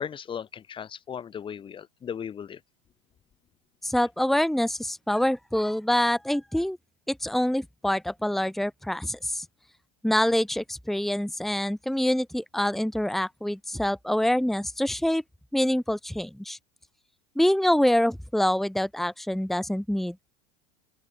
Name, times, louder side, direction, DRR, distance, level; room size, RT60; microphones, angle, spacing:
voice 1, 0.0-2.6, left 8 dB, 30° left, 1.8 m, -36 dB
voice 2, 3.8-6.8 7.1-9.5 10.0-15.2 15.5-16.6 17.4-20.2, left 1 dB, ahead, 1.7 m, -25 dB
open air
hypercardioid pair, 105°, 18 cm